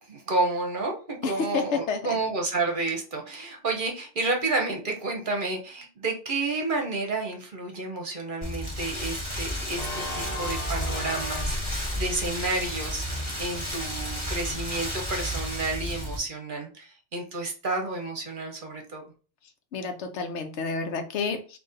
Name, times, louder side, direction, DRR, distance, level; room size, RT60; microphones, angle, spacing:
voice 1, 0.1-19.0, right 3 dB, 50° right, 3 dB, 0.9 m, -30 dB
voice 2, 1.2-2.2 19.7-21.6, left 5 dB, 80° left, 6 dB, 1.0 m, -30 dB
Rain, 8.4-16.2, equal, 25° left, 1.4 m, -32 dB
Organ, 9.7-14.5, left 1 dB, 60° left, 1.4 m, -40 dB
4.1 x 2.7 x 3.8 m, 0.36 s
omnidirectional pair, 1.2 m